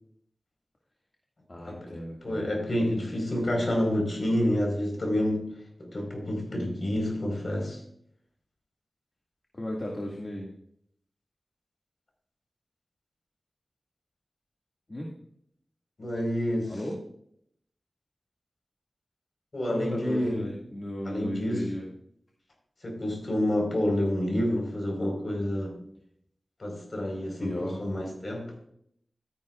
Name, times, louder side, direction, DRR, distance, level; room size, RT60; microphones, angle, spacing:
voice 1, 1.5-2.5 9.5-10.5 14.9-15.1 16.7-17.0 19.7-21.9 27.4-27.8, left 1 dB, 40° left, -2 dB, 2.0 m, -35 dB
voice 2, 2.2-5.5 5.8-7.8 16.0-16.7 19.5-20.4 21.0-21.6 22.8-25.8 26.6-28.5, left 1 dB, 55° left, 1 dB, 4.5 m, -28 dB
13.5 x 10.0 x 2.4 m, 0.68 s
wide cardioid pair, 70°, 0 cm